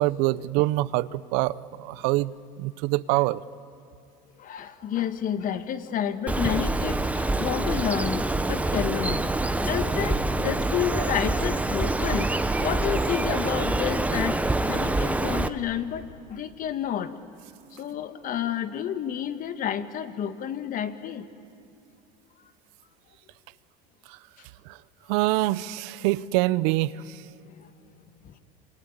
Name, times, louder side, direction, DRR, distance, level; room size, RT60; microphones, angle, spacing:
voice 1, 0.0-1.5 1.8-2.3 2.6-3.4 25.1-27.0, right 18 dB, 70° right, 18 dB, 0.7 m, -24 dB
voice 2, 4.4-12.3 12.6-17.1 17.7-21.2 27.5-27.7 28.2-28.3, left 9 dB, 45° left, 10 dB, 1.6 m, -30 dB
Bird, 6.3-15.5, right 2 dB, 5° right, 1.0 m, -26 dB
27.0 x 24.5 x 8.8 m, 2.6 s
supercardioid pair, 100°, 19 cm